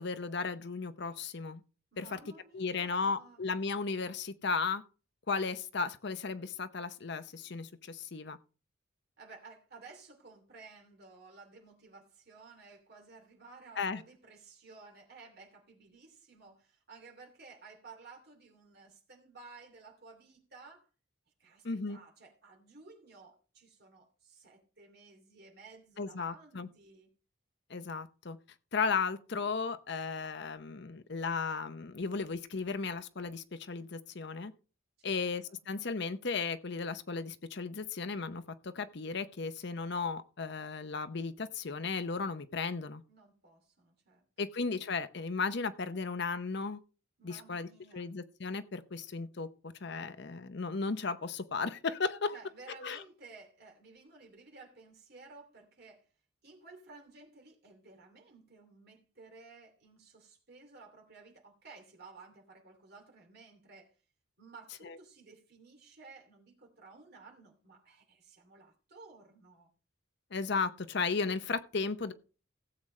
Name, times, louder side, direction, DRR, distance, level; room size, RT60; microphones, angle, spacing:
voice 1, 0.0-1.6 2.0-2.2 2.5-4.8 5.3-8.4 13.8-14.0 21.6-22.0 26.0-26.7 27.7-28.4 28.7-34.5 35.0-43.0 44.4-46.8 47.2-47.7 47.9-52.3 52.8-53.0 70.3-72.1, left 4 dB, 55° left, 0.7 m, -35 dB
voice 2, 1.9-3.4 9.2-20.9 21.4-27.1 35.0-35.6 43.1-44.5 47.2-48.1 52.3-56.1 56.4-64.0 64.4-69.7, right 4 dB, 50° right, 2.7 m, -55 dB
16.5 x 7.7 x 3.2 m
head